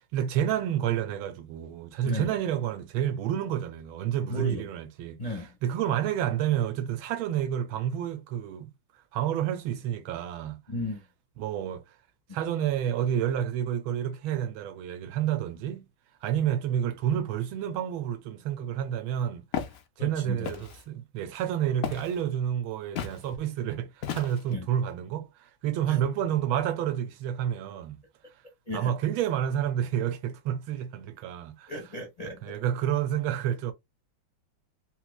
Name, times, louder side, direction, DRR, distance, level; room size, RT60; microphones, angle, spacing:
voice 1, 0.0-5.2 5.6-8.7 9.1-10.6 11.4-11.8 12.3-15.9 16.2-19.4 20.0-28.0 28.7-31.7 32.4-33.7, right 10 dB, 85° right, 1.4 m, -29 dB
voice 2, 4.3-4.7 5.2-5.6 10.7-11.0 20.0-20.5 24.5-24.7 25.9-26.0 28.7-28.9 31.7-32.6, left 1 dB, 30° left, 0.6 m, -35 dB
Walk footsteps, 19.5-19.8 20.4-20.8 21.8-22.2 23.0-23.2 24.0-24.5, left 8 dB, 80° left, 0.7 m, -33 dB
3.8 x 3.0 x 2.2 m
omnidirectional pair, 2.2 m